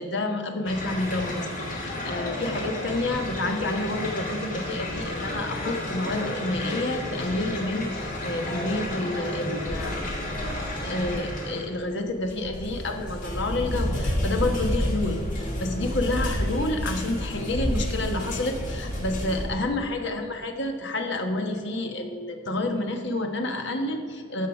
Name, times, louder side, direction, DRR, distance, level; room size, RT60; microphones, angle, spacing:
voice 1, 0.0-10.0 10.8-24.5, left 2 dB, 60° left, 4 dB, 1.2 m, -29 dB
sound 1, 0.6-11.7 12.1-19.5, left 1 dB, 40° left, 2.1 m, -31 dB
14.5 x 5.5 x 5.1 m, 2.2 s
head